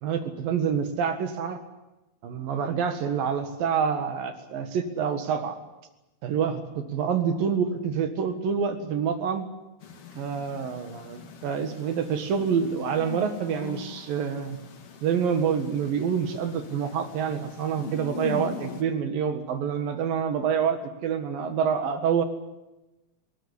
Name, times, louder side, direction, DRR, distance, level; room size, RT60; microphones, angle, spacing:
voice 1, 0.0-1.6 2.2-5.6 6.2-9.5 10.2-14.6 15.0-22.2, right 7 dB, 70° right, 8 dB, 3.4 m, -27 dB
sound 1, 9.8-18.8, left 5 dB, 45° left, 2.5 m, -41 dB
21.5 x 18.5 x 10.0 m, 0.99 s
omnidirectional pair, 4.2 m